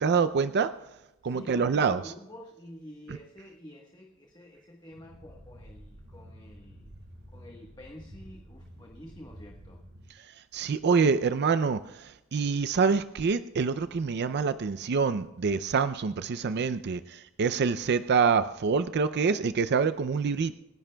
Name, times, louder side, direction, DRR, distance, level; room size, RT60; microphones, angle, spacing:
voice 1, 0.0-0.7 1.2-2.1 10.2-20.6, right 5 dB, 50° right, 13 dB, 0.4 m, -26 dB
voice 2, 1.2-6.9 7.3-9.8, left 1 dB, 20° left, 1 dB, 1.2 m, -49 dB
sound 1, 4.9-10.1, equal, 75° right, 4.5 m, -50 dB
28.0 x 11.0 x 2.3 m, 0.95 s
head